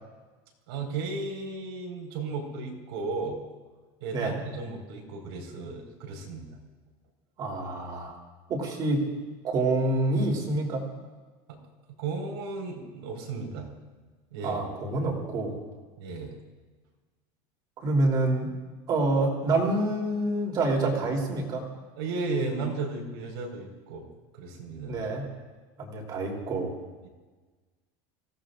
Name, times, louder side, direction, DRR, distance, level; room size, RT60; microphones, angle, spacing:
voice 1, 0.7-3.4 4.0-6.5 11.5-11.6 11.9-13.7 14.3-14.6 16.0-16.4 22.0-24.1 24.3-25.1, right 3 dB, 90° right, 0 dB, 4.7 m, -34 dB
voice 2, 7.4-8.1 8.5-9.0 9.4-10.8 14.4-15.6 17.8-18.5 18.9-21.6 24.9-25.2 25.8-26.7, right 2 dB, 35° right, 0 dB, 3.2 m, -27 dB
25.0 x 16.5 x 2.5 m, 1.3 s
cardioid pair, 165°, 13 cm